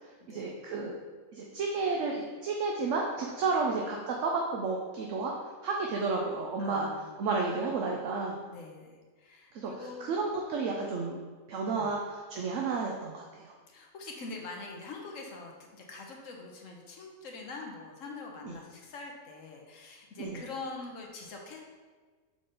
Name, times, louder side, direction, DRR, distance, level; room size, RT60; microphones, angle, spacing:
voice 1, 0.3-1.0 1.3-5.3 5.6-6.9 7.2-8.4 9.5-11.2 11.5-13.5 18.4-18.5 20.2-20.4, right 4 dB, 65° right, 0 dB, 0.9 m, -32 dB
voice 2, 6.6-7.2 8.5-10.2 11.7-11.9 13.7-21.6, left 3 dB, 60° left, 1 dB, 1.2 m, -44 dB
6.6 x 3.8 x 3.9 m, 1.4 s
omnidirectional pair, 1.5 m